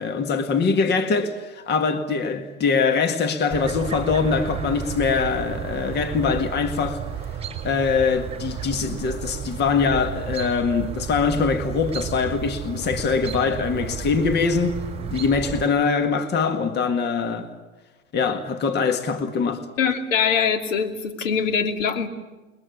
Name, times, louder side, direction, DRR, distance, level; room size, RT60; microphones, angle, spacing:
voice 1, 0.0-7.0 7.6-17.5 18.1-19.7, left 5 dB, 25° left, 1.8 m, -23 dB
Chirp tweet, 3.5-15.6, right 8 dB, 15° right, 4.9 m, -33 dB
voice 2, 19.8-22.1, left 6 dB, 65° left, 3.1 m, -23 dB
29.5 x 22.5 x 8.5 m
hypercardioid pair, 110°, 42 cm